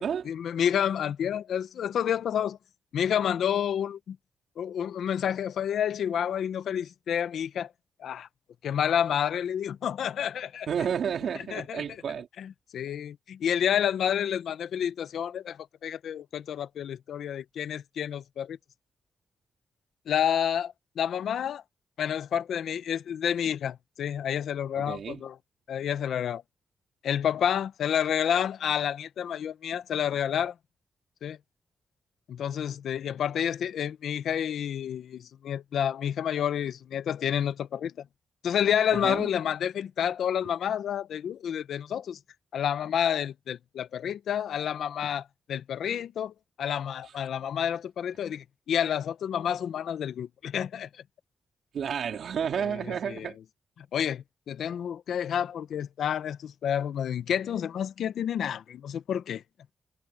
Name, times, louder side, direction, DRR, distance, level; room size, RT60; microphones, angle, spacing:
voice 1, 0.0-2.6 2.9-4.2 4.6-7.7 8.0-8.3 8.6-10.7 11.5-11.8 12.4-18.6 20.1-21.6 22.0-25.4 25.7-26.4 27.0-30.5 31.2-31.4 32.3-38.0 38.4-42.2 42.5-50.9 52.6-52.8 53.1-53.3 53.8-59.4, left 9 dB, 80° left, 0.9 m, -29 dB
voice 2, 10.7-12.3 24.7-25.2 38.9-39.3 47.0-47.1 51.7-53.4, right 7 dB, 70° right, 3.9 m, -31 dB
cardioid pair, 110°, 0 cm